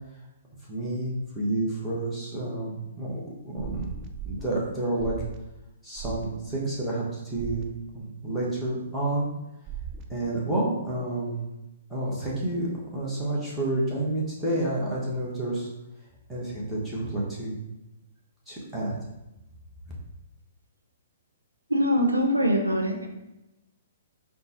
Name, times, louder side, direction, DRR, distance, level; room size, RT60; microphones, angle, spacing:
voice 1, 0.7-3.9 4.2-5.2 5.8-7.7 7.9-9.3 10.1-11.5 11.9-12.7 12.9-15.7 16.3-17.6 18.5-19.0, right 1 dB, ahead, -8 dB, 1.3 m, -29 dB
sound 1, 3.6-4.4 5.0-5.4 6.0-6.2 7.3-7.6 9.7-10.0, right 7 dB, 30° right, 0.4 m, -36 dB
voice 2, 21.7-23.1, equal, 90° right, 1 dB, 0.6 m, -23 dB
3.9 x 2.3 x 4.4 m, 0.95 s
figure-of-eight pair, 120°, 0 cm